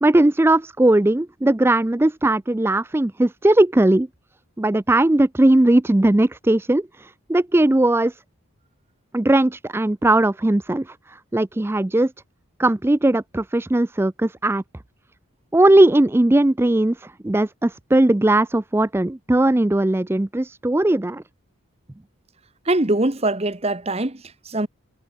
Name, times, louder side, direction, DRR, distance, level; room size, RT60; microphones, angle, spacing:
voice 1, 0.0-4.1 4.6-8.2 9.1-12.1 12.6-14.6 15.5-21.2, right 1 dB, 10° right, 0.4 m, -18 dB
voice 2, 22.6-24.7, right 2 dB, 30° right, 1.2 m, -23 dB
head